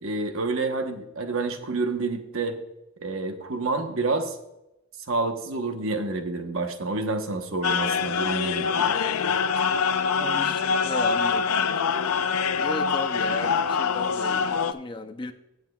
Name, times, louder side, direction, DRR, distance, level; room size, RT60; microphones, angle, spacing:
voice 1, 0.0-2.6 3.0-4.4 5.1-9.0, right 3 dB, 65° right, 6 dB, 1.0 m, -28 dB
sound 1, 7.6-14.7, left 6 dB, 75° left, 0.5 m, -24 dB
voice 2, 10.2-11.5 12.5-15.3, left 2 dB, 20° left, 7 dB, 0.5 m, -35 dB
16.0 x 7.6 x 2.3 m, 0.90 s
head